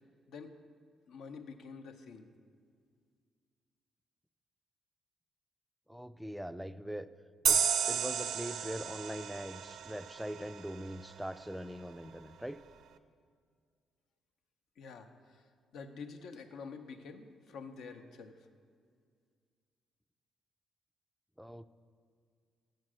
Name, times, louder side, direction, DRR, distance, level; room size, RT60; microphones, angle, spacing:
voice 1, 0.3-0.6 1.1-2.3 14.8-15.4 15.7-18.5, left 5 dB, 75° left, 7 dB, 0.7 m, -48 dB
voice 2, 5.9-7.1 7.4-12.6 21.4-21.6, equal, 5° right, 12 dB, 0.3 m, -42 dB
sound 1, 7.5-10.8, right 7 dB, 70° right, 0.4 m, -32 dB
7.5 x 6.5 x 6.1 m, 2.1 s
cardioid pair, 90°, 0 cm